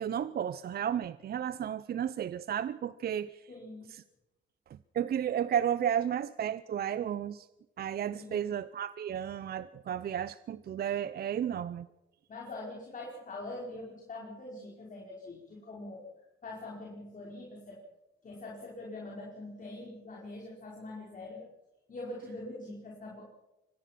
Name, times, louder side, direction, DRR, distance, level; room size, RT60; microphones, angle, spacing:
voice 1, 0.0-3.3 3.9-4.0 4.9-7.5 7.8-11.9, right 9 dB, 50° right, 0.6 m, -33 dB
voice 2, 3.5-3.9 8.1-8.5 12.3-16.1 16.4-17.8 18.2-21.5 21.9-23.2, left 2 dB, 40° left, 5.1 m, -43 dB
24.5 x 18.5 x 6.0 m
cardioid pair, 90°, 20 cm